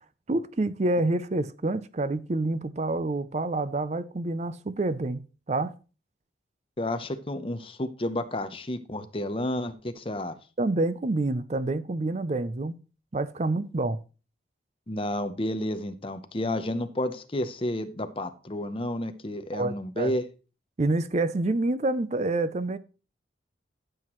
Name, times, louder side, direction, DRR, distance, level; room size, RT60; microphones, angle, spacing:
voice 1, 0.3-5.7 10.6-12.7 13.1-14.0 19.5-20.1 20.8-22.8, right 2 dB, 35° right, 0.5 m, -27 dB
voice 2, 6.8-10.4 14.9-20.2, left 1 dB, 30° left, 0.8 m, -31 dB
13.5 x 7.8 x 3.1 m
head